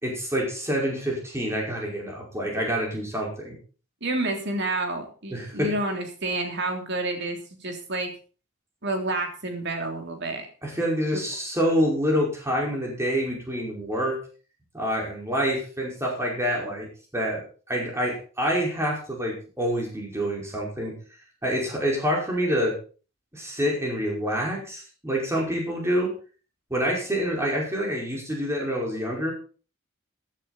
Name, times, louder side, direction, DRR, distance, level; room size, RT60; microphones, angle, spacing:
voice 1, 0.0-3.6 5.3-5.7 10.6-14.2 14.7-16.9 17.1-21.0 21.4-22.8 23.3-26.1 26.7-29.3, equal, 15° right, -1 dB, 5.2 m, -27 dB
voice 2, 4.0-8.1 8.8-10.5 11.1-11.2, right 2 dB, 55° right, 4 dB, 3.3 m, -29 dB
15.0 x 10.5 x 4.3 m, 0.37 s
head